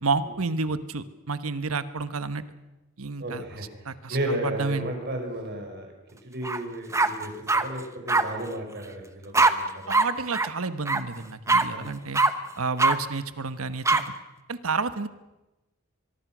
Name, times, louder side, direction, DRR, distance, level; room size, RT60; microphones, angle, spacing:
voice 1, 0.0-2.4 3.0-3.4 3.8-4.9 9.9-12.2 12.6-14.0 14.5-15.1, right 4 dB, 85° right, 12 dB, 1.2 m, -30 dB
voice 2, 3.2-3.6 4.1-5.9 6.2-9.9 11.7-11.9, right 1 dB, 50° right, 3 dB, 5.7 m, -33 dB
sound 1, 6.4-6.6 6.9-7.6 8.1-8.2 9.3-9.5 9.9-10.1 10.3-10.5 10.8-11.0 11.5-11.6 12.1-12.3 12.8-12.9 13.8-14.0, right 3 dB, 15° right, 1.0 m, -20 dB
23.5 x 23.0 x 6.2 m, 1.0 s
head